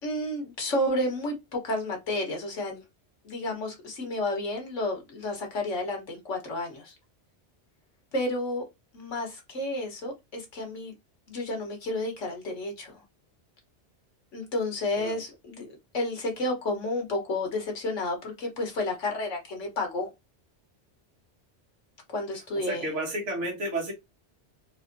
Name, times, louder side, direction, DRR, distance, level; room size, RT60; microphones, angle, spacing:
voice 1, 0.0-2.8 3.2-6.9 8.1-8.6 8.9-10.9 11.3-13.0 14.3-15.7 15.9-20.1 22.1-22.9, left 1 dB, 85° left, 1.6 m, -31 dB
voice 2, 22.7-23.9, right 1 dB, 75° right, 1.5 m, -31 dB
4.0 x 2.6 x 2.6 m
omnidirectional pair, 1.2 m